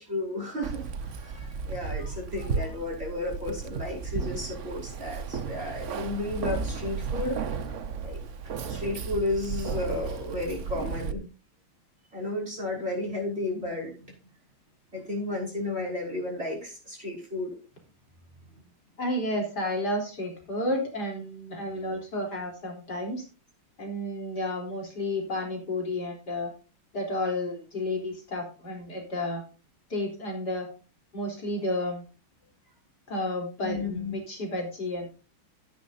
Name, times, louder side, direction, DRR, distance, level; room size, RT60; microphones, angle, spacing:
voice 1, 0.0-7.7 7.9-8.2 8.7-11.2 12.1-14.1 14.9-17.5 33.6-34.1, left 2 dB, 25° right, -1 dB, 6.4 m, -33 dB
Keys jangling, 0.6-11.1, right 5 dB, 50° right, 0.9 m, -34 dB
voice 2, 19.0-23.2 23.8-26.5 26.9-29.4 29.9-30.7 31.1-32.0 33.1-35.1, left 1 dB, 50° left, 0 dB, 4.3 m, -31 dB
16.0 x 9.7 x 2.7 m, 0.33 s
omnidirectional pair, 2.3 m